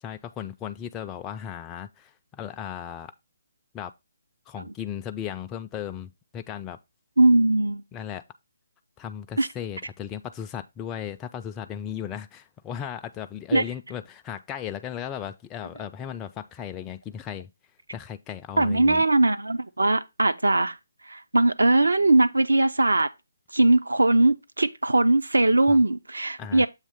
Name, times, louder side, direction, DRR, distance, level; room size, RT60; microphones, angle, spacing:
voice 1, 0.0-3.1 3.7-3.9 4.5-6.8 7.9-8.2 9.0-17.5 17.9-19.0 25.7-25.8 26.4-26.7, left 9 dB, 15° left, 0.3 m, -36 dB
voice 2, 7.2-7.8 9.4-9.5 13.5-13.6 18.6-20.7 21.1-23.1 23.5-26.7, right 2 dB, 85° right, 0.6 m, -20 dB
7.3 x 2.9 x 5.6 m
figure-of-eight pair, 150°, 0 cm